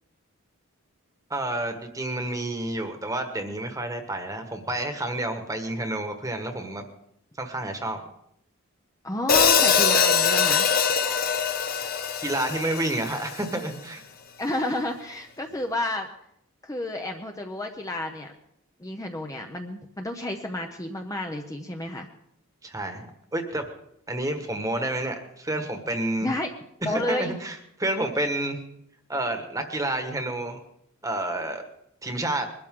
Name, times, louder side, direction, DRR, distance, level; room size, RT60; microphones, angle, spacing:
voice 1, 1.3-6.9 7.4-8.0 12.2-14.0 22.6-23.7 24.1-26.3 26.8-28.6 29.1-30.6 31.0-31.6 32.0-32.5, right 1 dB, 15° right, 6 dB, 1.4 m, -29 dB
voice 2, 9.0-10.7 14.4-16.1 16.6-18.3 18.8-22.1 26.2-26.5 26.8-27.4, left 1 dB, 15° left, 3 dB, 0.8 m, -31 dB
Hi-hat, 9.3-13.5, left 6 dB, 45° left, 0.9 m, -22 dB
22.0 x 12.5 x 3.8 m, 0.75 s
head